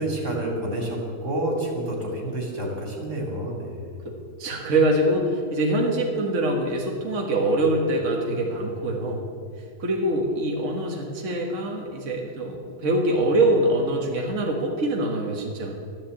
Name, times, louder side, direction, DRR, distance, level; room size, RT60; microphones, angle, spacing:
voice 1, 0.0-4.0, right 1 dB, 65° right, -1 dB, 4.1 m, -29 dB
voice 2, 4.4-9.2 9.8-15.7, right 1 dB, 45° right, 0 dB, 1.9 m, -24 dB
12.5 x 11.5 x 8.4 m, 2.3 s
omnidirectional pair, 1.9 m